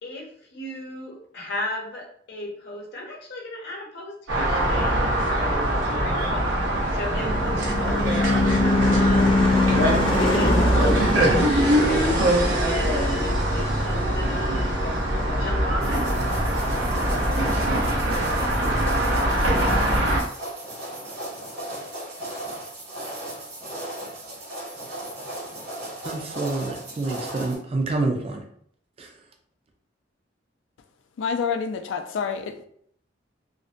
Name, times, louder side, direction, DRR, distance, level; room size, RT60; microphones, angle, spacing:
voice 1, 0.0-9.4 10.2-12.0 12.7-14.8 15.4-16.1 16.4-16.5, left 1 dB, 60° left, -2 dB, 0.8 m, -35 dB
sound 1, 4.3-20.2, right 1 dB, 85° right, 0.7 m, -23 dB
Car passing by / Truck / Engine, 6.8-15.5, left 2 dB, 30° left, 0.5 m, -24 dB
sound 2, 15.8-27.6, right 1 dB, 65° right, 1.2 m, -36 dB
voice 2, 26.0-28.4 29.0-29.1, right 3 dB, 30° right, 3 dB, 0.3 m, -27 dB
voice 3, 31.2-32.6, left 6 dB, 85° left, 7 dB, 0.3 m, -28 dB
2.5 x 2.1 x 2.5 m, 0.63 s
head